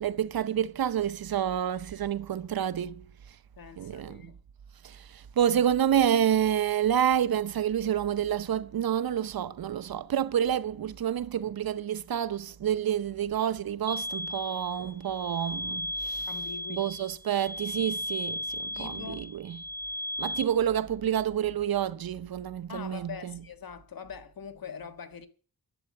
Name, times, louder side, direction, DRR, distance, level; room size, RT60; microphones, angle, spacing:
voice 1, 0.0-3.0 3.8-4.2 5.4-16.3 16.7-19.6 20.2-23.4, right 9 dB, 75° right, 0.8 m, -28 dB
voice 2, 3.6-4.4 16.3-16.9 18.7-19.3 22.7-25.3, left 6 dB, 70° left, 1.6 m, -43 dB
sound 1, 13.9-20.4, left 1 dB, 25° left, 1.2 m, -35 dB
11.0 x 8.2 x 8.7 m
cardioid pair, 80°, 36 cm